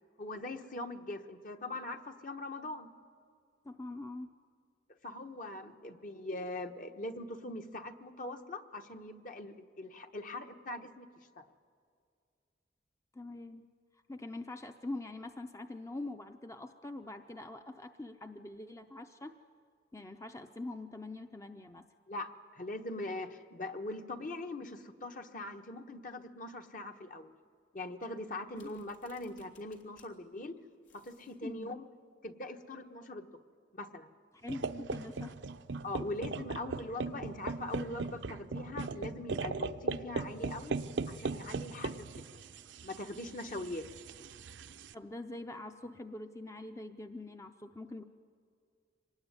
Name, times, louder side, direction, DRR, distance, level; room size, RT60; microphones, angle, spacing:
voice 1, 0.2-2.9 5.0-11.1 11.4-11.5 22.1-27.3 27.7-30.6 30.9-31.9 32.2-33.4 33.7-34.1 35.8-40.8 41.1-42.4 42.8-43.9, left 2 dB, 45° left, 6 dB, 1.2 m, -42 dB
voice 2, 3.6-4.3 13.1-13.6 13.9-19.4 19.9-21.8 28.6-28.7 31.4-31.8 34.4-35.4 44.9-48.0, left 2 dB, 15° left, 7 dB, 0.6 m, -44 dB
sound 1, 28.5-30.1 30.4-30.5 30.8-31.4, left 5 dB, 85° left, 3.5 m, -65 dB
sound 2, 34.5-44.9, right 3 dB, 75° right, 0.7 m, -39 dB
25.0 x 19.5 x 9.7 m, 2.3 s
head